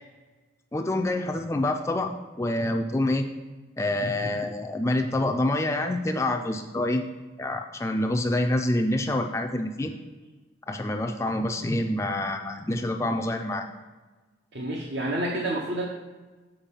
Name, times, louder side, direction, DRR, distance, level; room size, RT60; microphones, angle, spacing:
voice 1, 0.7-3.3 3.8-7.1 7.4-9.9 10.7-13.7, left 1 dB, 15° left, 4 dB, 0.3 m, -27 dB
voice 2, 14.5-15.8, right 1 dB, 65° right, -1 dB, 0.8 m, -29 dB
7.2 x 4.6 x 5.2 m, 1.3 s
head